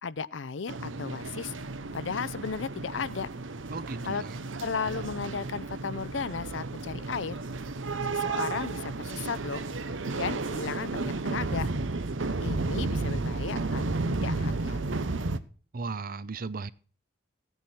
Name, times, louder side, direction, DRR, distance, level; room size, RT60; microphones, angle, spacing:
voice 1, 0.0-1.6 1.9-3.3 4.0-4.2 4.6-7.4 8.0-9.7 10.2-11.7 12.4-15.0, left 5 dB, 65° left, 0.6 m, -35 dB
sound 1, 0.7-15.4, right 3 dB, 70° right, 0.9 m, -33 dB
voice 2, 3.7-4.4 15.7-16.7, right 4 dB, 45° right, 0.7 m, -36 dB
15.5 x 9.3 x 4.3 m
head